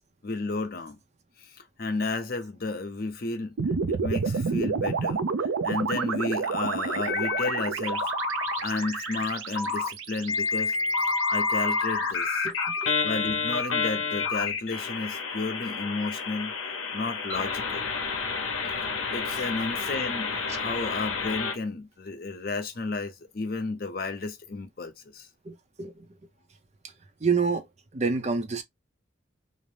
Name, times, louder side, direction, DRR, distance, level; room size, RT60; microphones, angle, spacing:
voice 1, 0.2-1.0 1.4-3.6 3.9-8.1 8.6-10.7 11.3-12.5 13.0-16.5 16.9-17.9 19.1-25.3, left 3 dB, 45° left, 0.6 m, -32 dB
sound 1, 3.6-11.9, right 5 dB, 90° right, 0.5 m, -30 dB
sound 2, 7.1-7.6 7.9-9.3 9.6-9.9 10.3-21.6, left 4 dB, 85° left, 0.7 m, -29 dB
voice 2, 25.4-26.2 26.8-26.9 27.2-28.6, right 5 dB, 35° right, 0.5 m, -28 dB
2.6 x 2.0 x 3.1 m
head